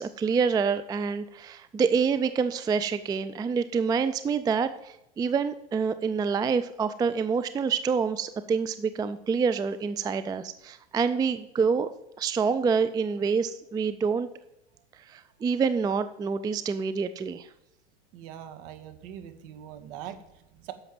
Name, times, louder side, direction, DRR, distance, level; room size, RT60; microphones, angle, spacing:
voice 1, 0.0-11.9 12.2-14.3 15.1-17.5, right 5 dB, 10° right, 12 dB, 0.4 m, -27 dB
voice 2, 18.1-20.7, right 10 dB, 55° right, 9 dB, 1.9 m, -42 dB
10.5 x 7.1 x 7.7 m, 0.85 s
hypercardioid pair, 100°, 33 cm